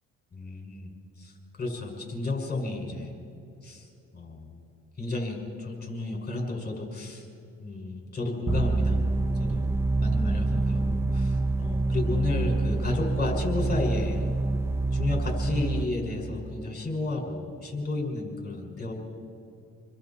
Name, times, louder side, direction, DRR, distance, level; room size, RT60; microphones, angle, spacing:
voice 1, 0.3-3.2 3.6-3.9 4.1-4.5 5.0-7.3 7.6-9.0 9.4-9.7 10.0-14.3 14.9-18.9, left 2 dB, 35° left, 1 dB, 5.8 m, -32 dB
sound 1, 8.5-15.9, right 2 dB, 10° right, 0.8 m, -26 dB
29.0 x 22.0 x 4.4 m, 2.6 s
cardioid pair, 90°, 30 cm